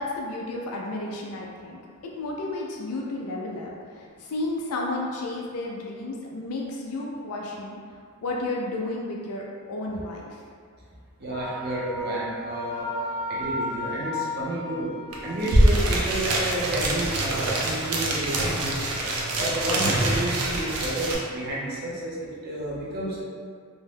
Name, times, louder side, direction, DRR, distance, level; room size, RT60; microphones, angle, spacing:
voice 1, 0.0-7.8 8.2-10.4, left 2 dB, 75° left, -2 dB, 0.4 m, -32 dB
voice 2, 11.2-12.9 13.3-14.9 15.2-18.8 19.3-23.2, right 1 dB, 45° right, -6 dB, 0.7 m, -31 dB
Wind instrument woodwind instrument, 11.3-15.4, left 1 dB, 15° left, 0.9 m, -33 dB
sound 1, 15.1-15.2 15.4-21.2, right 1 dB, 80° right, 0.5 m, -24 dB
2.7 x 2.2 x 3.3 m, 2.2 s
head